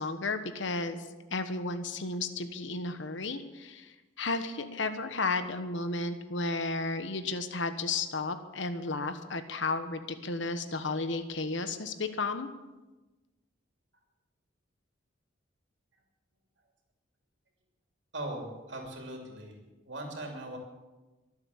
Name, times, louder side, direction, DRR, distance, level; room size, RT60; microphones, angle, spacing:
voice 1, 0.0-12.5, left 3 dB, 70° left, 9 dB, 1.2 m, -33 dB
voice 2, 18.1-19.5 19.8-20.6, right 1 dB, 65° right, 1 dB, 3.0 m, -39 dB
23.0 x 7.9 x 7.2 m, 1.1 s
head